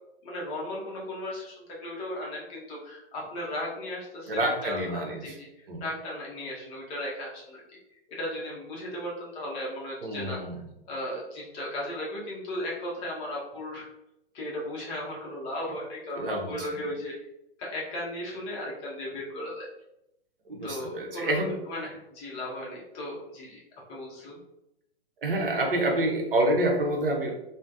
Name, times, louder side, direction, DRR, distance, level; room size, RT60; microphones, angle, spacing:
voice 1, 0.2-5.5 5.8-7.6 8.2-10.4 10.9-13.8 14.3-17.1 17.6-19.7 20.6-21.4 21.7-23.6 23.9-24.4, left 1 dB, 20° left, -4 dB, 0.6 m, -36 dB
voice 2, 4.3-5.4 5.7-5.9 10.0-10.6 16.1-16.7 20.5-21.6 25.2-27.3, right 1 dB, 65° right, 1 dB, 0.7 m, -27 dB
3.1 x 2.0 x 2.5 m, 0.85 s
figure-of-eight pair, 110°, 31 cm